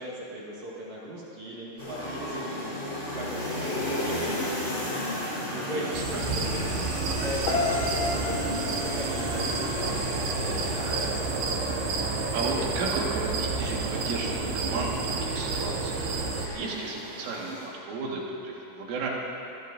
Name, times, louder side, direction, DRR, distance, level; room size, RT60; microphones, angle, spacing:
voice 1, 0.0-11.6, equal, 45° right, -6 dB, 2.8 m, -39 dB
sound 1, 1.8-17.7, left 1 dB, 15° left, 4.6 m, -35 dB
voice 2, 5.7-6.2 12.3-16.0 16.6-19.1, right 3 dB, 85° right, -3 dB, 4.5 m, -34 dB
sound 2, 5.9-16.5, right 4 dB, 65° right, 2.8 m, -30 dB
Piano, 7.5-10.6 10.8-11.3, left 3 dB, 75° left, 4.5 m, -32 dB
25.5 x 18.5 x 2.7 m, 2.9 s
omnidirectional pair, 5.6 m